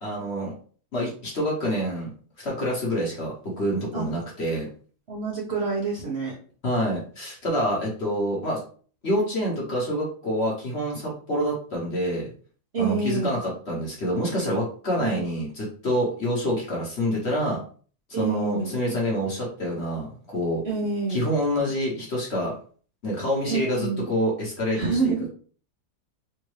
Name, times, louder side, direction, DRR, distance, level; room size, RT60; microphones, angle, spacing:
voice 1, 0.0-0.5 0.9-2.1 2.4-4.7 6.6-8.6 9.0-12.3 12.8-17.6 18.1-20.1 20.3-20.6 21.1-22.6 23.0-25.3, equal, 45° left, -3 dB, 1.2 m, -27 dB
voice 2, 5.1-6.3 12.7-13.4 15.0-15.4 18.1-18.7 20.6-21.3 23.5-24.1 24.7-25.3, right 5 dB, 50° right, -4 dB, 0.9 m, -27 dB
3.5 x 2.6 x 3.1 m, 0.42 s
omnidirectional pair, 1.7 m